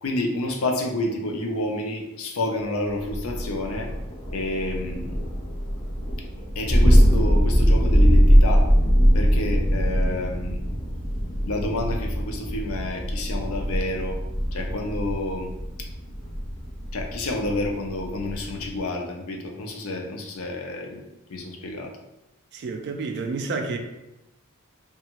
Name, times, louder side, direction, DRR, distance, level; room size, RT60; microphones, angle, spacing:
voice 1, 0.0-3.9 4.3-5.2 6.5-8.7 9.1-10.6 11.4-14.2 14.5-15.5 15.8-15.9 16.9-21.9, left 2 dB, 75° left, 2 dB, 0.5 m, -29 dB
Thunder, 3.0-18.8, equal, 25° left, 0.5 m, -22 dB
voice 2, 22.5-23.8, right 4 dB, 55° right, 5 dB, 0.3 m, -29 dB
2.8 x 2.3 x 2.9 m, 0.94 s
head